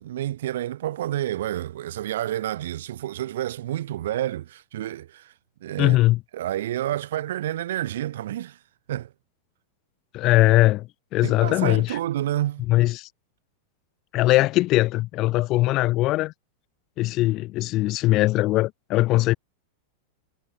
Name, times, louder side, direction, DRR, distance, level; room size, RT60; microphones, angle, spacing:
voice 1, 0.0-5.3 5.6-6.0 6.3-8.6 8.9-9.1 11.2-12.7, right 13 dB, 65° right, 5.2 m, -29 dB
voice 2, 5.8-6.2 10.1-10.9 11.1-12.0 12.7-13.1 14.1-16.3 17.0-19.3, left 18 dB, 25° left, 0.6 m, -20 dB
supercardioid pair, 180°, 0 cm